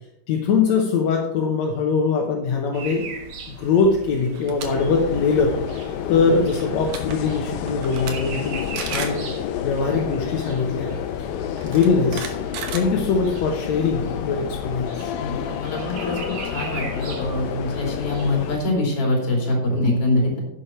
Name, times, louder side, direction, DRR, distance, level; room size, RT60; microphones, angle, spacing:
voice 1, 0.3-3.1 3.5-5.6 6.1-9.2 9.6-10.9 11.2-11.3 11.6-12.4 12.7-15.1, left 5 dB, 65° left, 0 dB, 2.0 m, -22 dB
sound 1, 2.7-18.7, right 4 dB, 55° right, 2.4 m, -40 dB
sound 2, 4.3-4.7 5.1-5.3 6.5-6.6 6.8-7.2 7.7-8.1 8.4-8.5 8.8-9.2 10.4-10.5 11.6-13.4, right 6 dB, 90° right, 3.1 m, -33 dB
sound 3, 4.6-18.6, left 9 dB, 90° left, 2.4 m, -30 dB
voice 2, 15.2-16.2 16.5-20.4, left 1 dB, 45° left, -1 dB, 3.8 m, -24 dB
10.5 x 8.3 x 4.5 m, 0.86 s
omnidirectional pair, 4.0 m